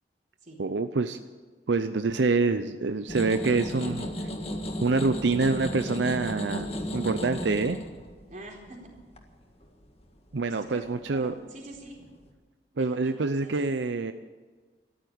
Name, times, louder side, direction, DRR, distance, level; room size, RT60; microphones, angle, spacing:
voice 1, 0.6-1.2 1.7-4.1 4.8-6.7 6.9-7.8 10.3-11.3 12.8-14.1, right 3 dB, 90° right, 10 dB, 0.6 m, -26 dB
sound 1, 3.1-11.3 11.7-12.3, left 1 dB, 35° left, 1.8 m, -35 dB
voice 2, 8.3-8.8 10.4-12.0 12.7-13.6, right 2 dB, 45° right, -1 dB, 4.0 m, -45 dB
14.0 x 11.5 x 8.7 m, 1.4 s
head